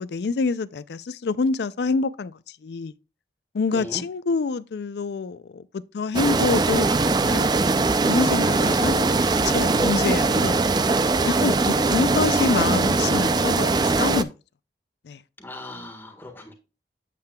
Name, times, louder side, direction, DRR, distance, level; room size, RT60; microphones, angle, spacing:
voice 1, 0.0-2.9 3.5-7.5 8.0-9.1 9.4-10.6 11.3-14.3 15.0-15.2, left 4 dB, 70° left, 0.4 m, -26 dB
sound 1, 6.1-14.2, right 3 dB, 25° right, 0.3 m, -21 dB
voice 2, 11.7-12.4 15.4-16.5, left 1 dB, 10° left, 1.5 m, -38 dB
8.6 x 7.6 x 2.3 m
head